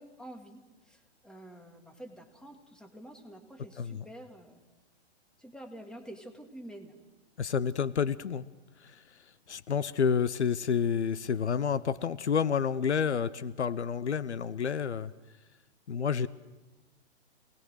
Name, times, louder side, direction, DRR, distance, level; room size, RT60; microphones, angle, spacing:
voice 1, 0.0-4.6 5.4-7.0, right 1 dB, ahead, 5 dB, 2.1 m, -48 dB
voice 2, 7.4-8.4 8.8-9.0 9.5-15.1 15.9-16.3, left 7 dB, 80° left, 17 dB, 0.9 m, -29 dB
27.5 x 19.0 x 6.5 m, 1.2 s
hypercardioid pair, 120°, 34 cm